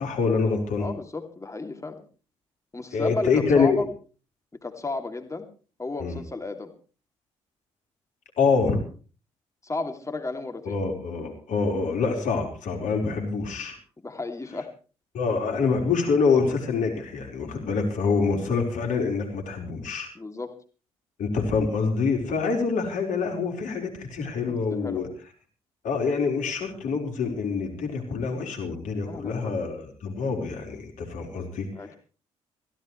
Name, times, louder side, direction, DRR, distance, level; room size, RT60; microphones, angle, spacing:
voice 1, 0.0-0.9 2.9-3.8 6.0-6.2 8.4-8.8 10.6-13.8 15.1-20.1 21.2-25.1 25.8-31.7, left 4 dB, 70° left, 3 dB, 4.7 m, -26 dB
voice 2, 0.8-2.0 2.7-3.9 4.6-5.5 5.8-6.7 9.6-10.8 14.0-14.7 20.1-20.5 24.5-25.0 29.0-29.6 31.7-31.9, left 3 dB, 20° left, 5 dB, 2.8 m, -33 dB
24.0 x 16.0 x 3.3 m, 0.37 s
hypercardioid pair, 45°, 14 cm